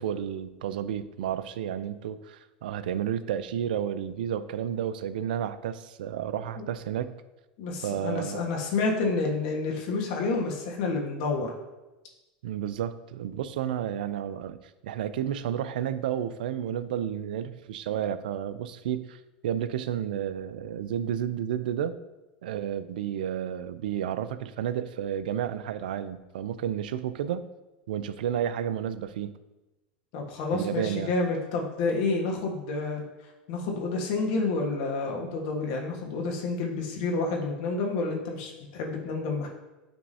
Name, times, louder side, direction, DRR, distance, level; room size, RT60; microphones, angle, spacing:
voice 1, 0.0-7.1 7.8-8.4 12.4-14.6 14.8-21.9 22.4-27.5 27.9-29.4 30.5-31.1, right 9 dB, 75° right, 13 dB, 0.4 m, -31 dB
voice 2, 7.6-11.5 30.1-33.0 33.5-39.5, left 3 dB, 60° left, 0 dB, 1.4 m, -29 dB
9.9 x 3.5 x 2.8 m, 1.1 s
hypercardioid pair, 95°, 5 cm